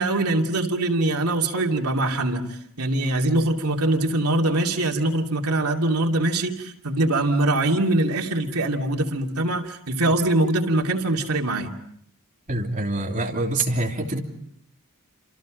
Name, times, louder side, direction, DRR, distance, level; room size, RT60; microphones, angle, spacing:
voice 1, 0.0-2.4 2.8-11.7, right 2 dB, 80° right, 2 dB, 2.7 m, -23 dB
voice 2, 12.5-14.2, right 2 dB, 35° right, 0 dB, 3.2 m, -25 dB
29.5 x 27.5 x 5.2 m, 0.68 s
head